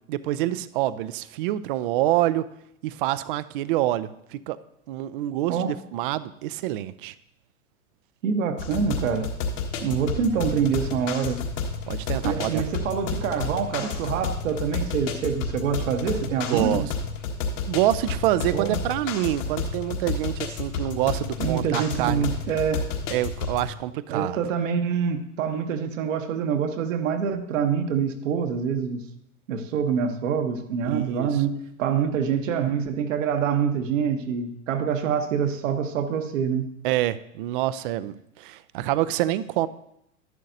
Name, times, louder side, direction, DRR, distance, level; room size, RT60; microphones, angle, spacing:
voice 1, 0.1-2.5 2.8-4.6 4.9-7.1 11.9-12.6 16.5-16.9 17.7-22.3 23.1-24.4 30.8-31.4 36.8-39.7, right 14 dB, 40° right, 16 dB, 0.4 m, -26 dB
voice 2, 8.2-9.3 9.8-11.4 12.2-16.9 18.5-18.8 21.4-22.8 24.1-29.0 29.5-36.7, right 7 dB, 60° right, 6 dB, 1.1 m, -26 dB
sound 1, 8.6-23.7, left 4 dB, 55° left, 1.6 m, -31 dB
12.0 x 10.5 x 2.6 m, 0.79 s
hypercardioid pair, 105°, 43 cm